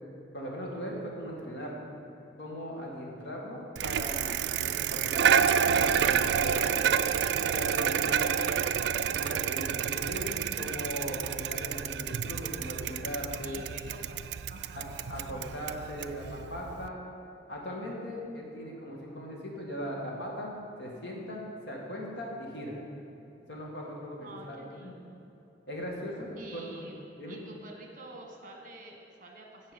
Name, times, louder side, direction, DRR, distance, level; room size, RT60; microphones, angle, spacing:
voice 1, 0.3-1.9 2.4-6.9 7.5-8.7 9.1-13.6 14.8-17.0 17.5-20.5 20.8-22.8 23.5-24.9 25.7-26.9 27.2-27.4, equal, 70° left, -2 dB, 2.0 m, -39 dB
Bicycle, 3.8-16.9, right 8 dB, 65° right, 0.3 m, -29 dB
voice 2, 8.0-8.6 13.4-14.2 14.5-15.7 24.2-25.3 26.4-29.7, right 2 dB, 45° right, 1 dB, 1.3 m, -49 dB
15.5 x 5.5 x 5.3 m, 2.8 s
head